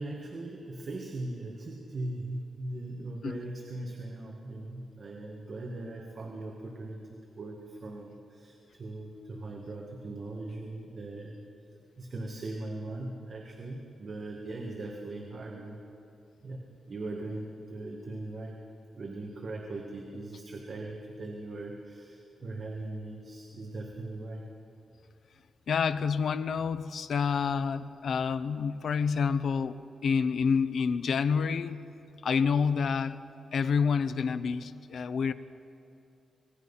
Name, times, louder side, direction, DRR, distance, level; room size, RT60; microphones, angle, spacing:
voice 1, 0.0-7.1 7.4-11.4 12.0-15.8 16.4-18.6 19.0-24.5, right 2 dB, 40° right, 0 dB, 1.9 m, -39 dB
voice 2, 25.7-31.8 32.2-33.2 33.5-35.3, left 6 dB, 60° left, 12 dB, 0.8 m, -28 dB
25.5 x 20.0 x 5.7 m, 2.6 s
wide cardioid pair, 180°, 0 cm